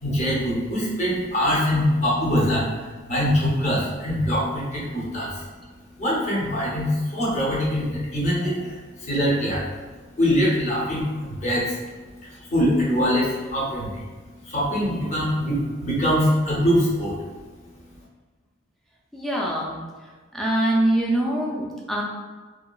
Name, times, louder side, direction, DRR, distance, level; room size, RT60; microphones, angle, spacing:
voice 1, 0.0-5.4 6.0-9.8 10.2-11.8 12.2-14.0 14.4-17.1, equal, 35° left, -6 dB, 0.7 m, -23 dB
voice 2, 19.1-19.8 20.3-22.0, right 1 dB, ahead, -4 dB, 0.3 m, -24 dB
2.8 x 2.3 x 2.3 m, 1.4 s
head